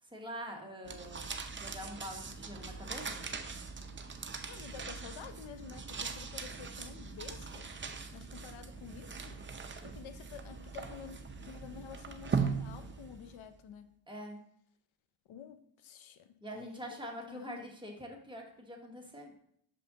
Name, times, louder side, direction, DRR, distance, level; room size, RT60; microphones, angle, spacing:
voice 1, 0.0-3.2 14.1-14.4 16.4-19.3, equal, 10° right, 0 dB, 1.2 m, -45 dB
sound 1, 0.8-13.4, right 5 dB, 25° right, 0.5 m, -40 dB
voice 2, 4.5-7.7 8.1-13.9 15.3-16.8 17.3-17.7, left 8 dB, 85° left, 9 dB, 0.6 m, -50 dB
6.5 x 5.3 x 2.8 m, 0.70 s
cardioid pair, 85°, 46 cm